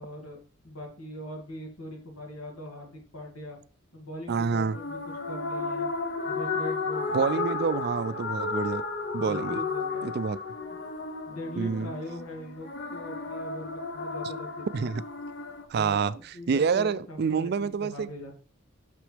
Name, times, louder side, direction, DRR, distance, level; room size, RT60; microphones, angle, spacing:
voice 1, 0.0-3.6 3.9-5.0 5.3-5.9 6.2-7.5 7.9-8.3 9.2-10.1 11.3-14.9 15.7-18.3, equal, 90° left, 2.3 m, -41 dB
voice 2, 4.3-4.8 7.1-8.8 9.1-9.6 10.0-10.4 11.6-11.9 14.7-15.0 15.7-18.1, right 5 dB, 50° right, 0.3 m, -27 dB
sound 1, 4.7-15.7, left 4 dB, 55° left, 0.8 m, -33 dB
6.2 x 5.9 x 3.3 m
head